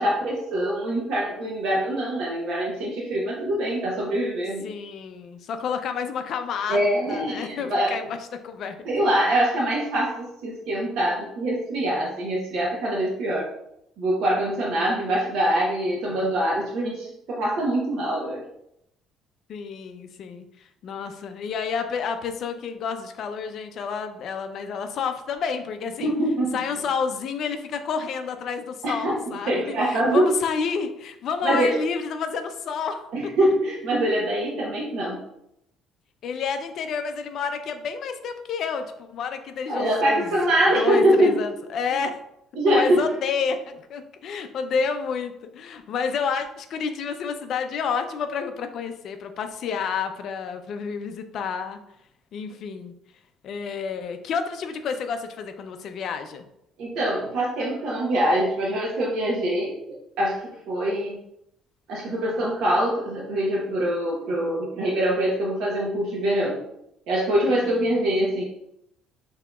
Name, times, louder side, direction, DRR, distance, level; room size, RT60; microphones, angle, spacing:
voice 1, 0.0-4.7 6.7-7.9 8.9-13.4 14.0-18.4 26.0-26.6 28.8-29.1 29.5-30.3 31.4-31.7 33.1-35.2 39.7-41.3 42.6-43.0 56.8-59.8 60.2-61.2 61.9-66.6 67.1-68.4, right 1 dB, 65° right, -4 dB, 0.8 m, -24 dB
voice 2, 4.6-6.8 7.1-8.8 19.5-26.1 26.5-33.3 36.2-40.4 40.8-42.2 42.7-51.8 52.3-52.9 53.4-56.4 64.3-64.6 67.5-67.9, left 6 dB, 50° left, 7 dB, 0.4 m, -30 dB
5.9 x 2.8 x 2.3 m, 0.81 s
cardioid pair, 155°, 0 cm